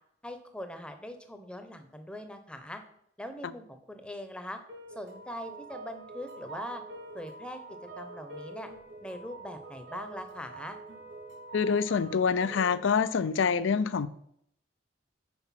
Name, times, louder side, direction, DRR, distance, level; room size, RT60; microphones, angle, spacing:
voice 1, 0.2-2.8 3.2-4.6 4.9-6.8 7.1-7.6 8.0-8.7 9.0-10.8, left 1 dB, 5° left, 7 dB, 0.7 m, -41 dB
sound 1, 4.7-12.8, right 3 dB, 70° right, 2.5 m, -45 dB
voice 2, 11.5-14.1, left 6 dB, 75° left, 15 dB, 0.4 m, -26 dB
6.1 x 4.9 x 5.7 m, 0.71 s
head